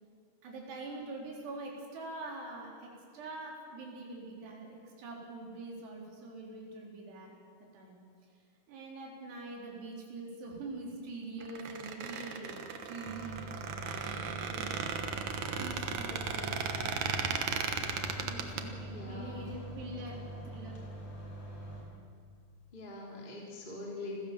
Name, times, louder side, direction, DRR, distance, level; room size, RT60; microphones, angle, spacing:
voice 1, 0.4-7.3 7.7-8.0 8.7-14.7 15.6-17.0 18.3-20.7, right 2 dB, 85° right, -1 dB, 5.9 m, -44 dB
Squeak, 11.4-18.6, right 6 dB, 60° right, 2.1 m, -36 dB
sound 1, 13.1-21.8, right 1 dB, 45° left, 5.8 m, -44 dB
voice 2, 18.2-19.5 22.7-24.2, left 2 dB, 15° left, -2 dB, 2.9 m, -44 dB
28.0 x 16.0 x 7.4 m, 2.2 s
omnidirectional pair, 4.7 m